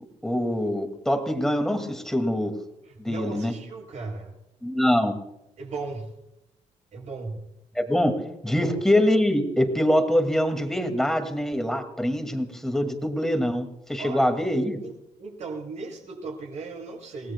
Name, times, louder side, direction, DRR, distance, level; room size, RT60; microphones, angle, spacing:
voice 1, 0.0-2.5 3.0-3.5 4.6-5.2 7.8-8.1 8.4-14.8, left 1 dB, 5° left, 6 dB, 2.1 m, -24 dB
voice 2, 2.8-4.3 5.6-6.1 6.9-7.5 8.5-8.8 14.0-14.3 14.8-14.9 15.2-17.3, right 4 dB, 65° right, 0 dB, 6.7 m, -36 dB
29.5 x 18.0 x 2.2 m, 0.86 s
cardioid pair, 115°, 13 cm